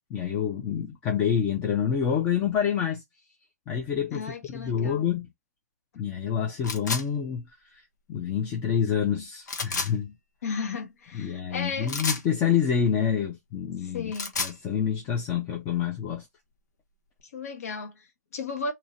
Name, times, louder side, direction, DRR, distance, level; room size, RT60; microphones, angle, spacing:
voice 1, 0.1-3.0 3.7-4.3 4.5-5.3 5.9-7.5 7.7-7.8 8.1-10.2 11.1-14.1 14.4-16.2, left 8 dB, 15° left, 0.5 m, -27 dB
voice 2, 4.1-5.1 10.4-11.9 13.8-14.3 17.3-18.7, left 4 dB, 60° left, 1.2 m, -34 dB
sound 1, 6.6-7.0 9.5-9.9 11.9-12.3 14.0-14.6, left 4 dB, 85° left, 1.1 m, -30 dB
2.8 x 2.7 x 4.1 m
hypercardioid pair, 165°, 9 cm